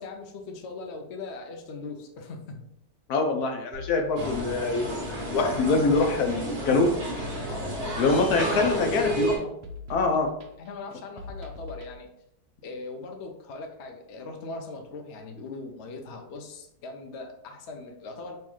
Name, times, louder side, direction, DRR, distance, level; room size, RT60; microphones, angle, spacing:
voice 1, 0.0-2.7 7.5-9.3 10.6-12.1 12.6-18.4, left 3 dB, 55° left, 3 dB, 0.8 m, -40 dB
voice 2, 3.1-6.9 8.0-9.3 9.9-10.3, left 3 dB, 70° left, 4 dB, 1.2 m, -24 dB
sound 1, 3.7-11.9, left 3 dB, 60° right, 0.7 m, -43 dB
sound 2, 4.2-9.4, equal, 40° right, 1.3 m, -31 dB
5.5 x 3.1 x 3.1 m, 0.75 s
omnidirectional pair, 1.8 m